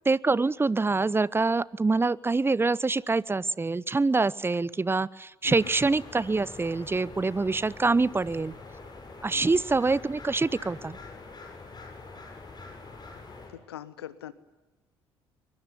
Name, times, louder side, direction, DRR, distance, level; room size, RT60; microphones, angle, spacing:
voice 1, 0.1-8.5 9.2-11.0, right 3 dB, 20° right, 22 dB, 0.8 m, -25 dB
sound 1, 5.4-13.5, left 3 dB, 35° left, 7.8 m, -45 dB
voice 2, 9.3-9.6 13.5-14.3, left 11 dB, 85° left, 17 dB, 1.1 m, -42 dB
23.0 x 21.5 x 9.9 m, 1.1 s
figure-of-eight pair, 50°, 13 cm